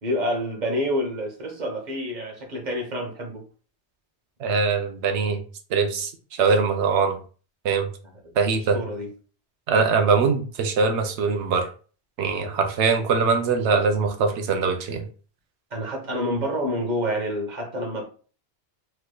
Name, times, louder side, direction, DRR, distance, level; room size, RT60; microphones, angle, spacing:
voice 1, 0.0-3.4 8.7-9.1 15.7-18.0, equal, 45° right, 1 dB, 1.0 m, -28 dB
voice 2, 4.4-5.4 5.7-7.2 7.6-7.9 8.3-8.8 9.7-11.7 12.2-15.1, right 5 dB, 85° right, 5 dB, 0.9 m, -22 dB
3.2 x 3.0 x 2.2 m, 0.39 s
omnidirectional pair, 1.1 m